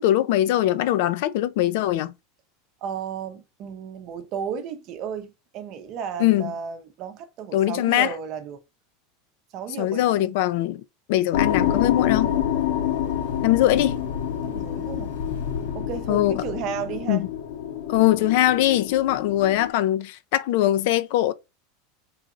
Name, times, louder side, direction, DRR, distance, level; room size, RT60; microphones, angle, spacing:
voice 1, 0.0-2.1 6.2-6.5 7.5-8.1 9.8-10.8 11.1-12.3 13.4-14.0 16.1-16.4 17.1-17.3 17.9-21.3, left 14 dB, 55° left, 0.5 m, -21 dB
voice 2, 2.8-8.6 9.5-10.3 12.2-12.5 14.4-15.2 15.7-17.3, right 7 dB, 35° right, 0.7 m, -34 dB
sound 1, 11.3-19.7, left 10 dB, 90° left, 2.3 m, -27 dB
4.3 x 3.9 x 2.5 m
supercardioid pair, 170°, 0 cm